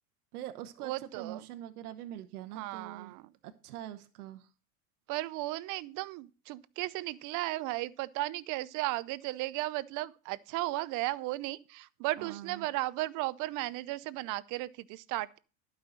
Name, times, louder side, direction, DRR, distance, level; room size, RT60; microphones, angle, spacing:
voice 1, 0.3-3.1 3.4-4.5 12.2-12.7, right 12 dB, 85° right, 1.0 m, -44 dB
voice 2, 0.8-1.4 2.5-3.3 5.1-15.4, right 18 dB, 45° right, 0.7 m, -35 dB
11.0 x 5.7 x 6.4 m
supercardioid pair, 125°, 44 cm